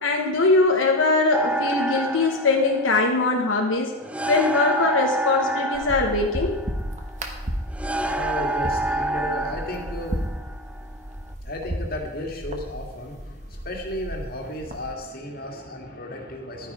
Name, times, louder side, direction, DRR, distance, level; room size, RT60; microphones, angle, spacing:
voice 1, 0.0-3.9 4.3-6.6, left 3 dB, 85° left, 1 dB, 1.2 m, -21 dB
sound 1, 1.3-11.3, right 2 dB, 5° right, 0.4 m, -29 dB
sound 2, 5.7-14.9, equal, 40° right, 1.3 m, -34 dB
voice 2, 8.0-10.4 10.8-10.9 11.4-16.7, left 1 dB, 50° left, 1 dB, 2.0 m, -34 dB
12.0 x 9.5 x 4.9 m, 1.2 s
head